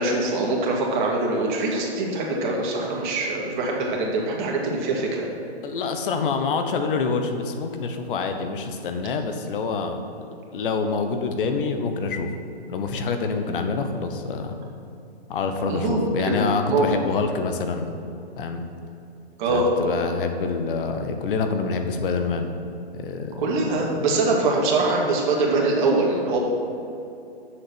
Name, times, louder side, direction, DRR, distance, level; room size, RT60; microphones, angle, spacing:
voice 1, 0.0-5.3 15.7-16.9 19.4-19.7 23.4-26.4, right 2 dB, 45° right, -2 dB, 2.3 m, -23 dB
voice 2, 5.6-10.0 10.5-12.3 12.7-14.5 15.3-18.0 18.4-18.6 19.5-22.6 22.9-23.4 23.9-24.1, left 4 dB, 55° left, 6 dB, 1.1 m, -26 dB
7.7 x 6.6 x 6.1 m, 2.7 s
hypercardioid pair, 130°, 32 cm